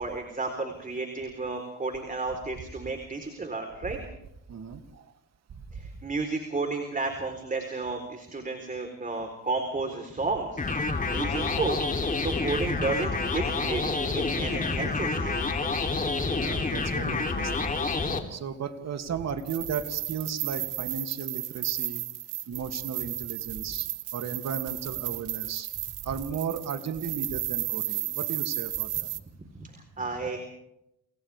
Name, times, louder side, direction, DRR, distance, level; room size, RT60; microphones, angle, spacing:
voice 1, 0.0-4.0 5.7-11.8 12.2-15.3 29.5-30.4, right 3 dB, 25° right, 4 dB, 4.1 m, -32 dB
voice 2, 4.5-5.1 10.9-11.0 16.3-17.7 18.3-22.0 22.5-25.7 26.0-29.1, right 6 dB, 60° right, 6 dB, 2.7 m, -35 dB
sound 1, 10.6-18.2, left 3 dB, 25° left, 3.3 m, -28 dB
sound 2, 19.4-29.2, right 15 dB, 85° right, 1.3 m, -33 dB
30.0 x 28.0 x 3.6 m, 0.84 s
cardioid pair, 90°, 30 cm